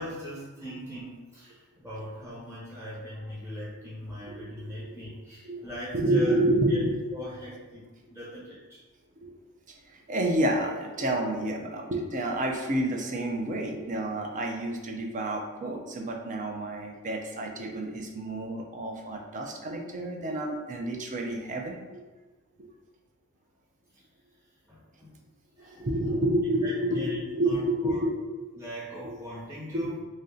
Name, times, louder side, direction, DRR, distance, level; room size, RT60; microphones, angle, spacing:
voice 1, 0.0-6.3 6.7-6.8 7.1-8.8 24.7-25.2 25.6-26.3 26.6-28.0 28.5-29.9, left 1 dB, 10° right, -10 dB, 1.1 m, -40 dB
voice 2, 5.9-6.9 9.2-9.3 9.7-22.0 22.6-22.7 25.8-28.4 29.0-29.1 29.7-29.9, right 1 dB, 35° right, 2 dB, 0.5 m, -29 dB
3.2 x 2.6 x 3.7 m, 1.3 s
head